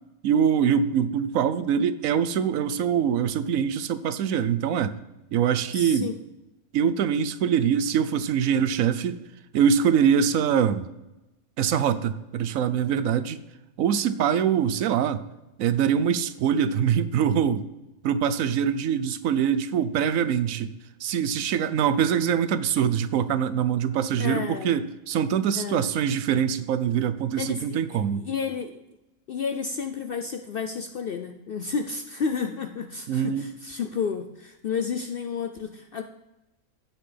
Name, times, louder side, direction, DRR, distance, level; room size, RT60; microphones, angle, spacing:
voice 1, 0.2-5.0 5.3-6.1 6.7-9.2 9.5-10.9 11.6-13.4 13.8-15.2 15.6-17.6 18.0-20.7 21.0-28.3 33.1-33.5, right 8 dB, 75° right, 13 dB, 1.0 m, -23 dB
voice 2, 5.7-6.1 24.2-24.8 25.5-25.8 27.3-28.8 29.3-36.0, left 5 dB, 65° left, 6 dB, 0.6 m, -31 dB
15.5 x 5.9 x 3.3 m, 0.97 s
omnidirectional pair, 1.5 m